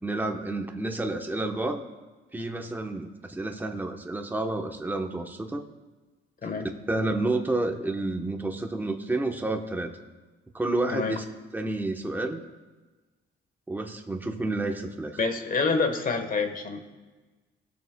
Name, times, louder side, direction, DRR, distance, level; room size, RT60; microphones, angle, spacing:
voice 1, 0.0-1.9 2.3-5.7 6.6-9.9 10.5-11.2 11.5-12.4 13.7-15.2, right 2 dB, 10° right, 4 dB, 0.9 m, -30 dB
voice 2, 15.2-16.8, left 4 dB, 45° left, 7 dB, 1.2 m, -27 dB
19.0 x 6.6 x 2.2 m, 1.3 s
cardioid pair, 90°, 20 cm